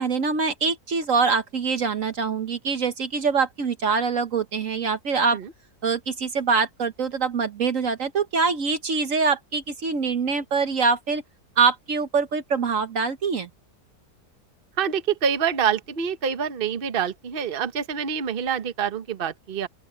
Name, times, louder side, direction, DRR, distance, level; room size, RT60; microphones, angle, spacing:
voice 1, 0.0-5.4 5.8-11.2 11.6-13.5, right 5 dB, 55° right, 1.4 m, -24 dB
voice 2, 14.8-19.7, right 7 dB, 40° right, 1.2 m, -26 dB
open air
omnidirectional pair, 1.7 m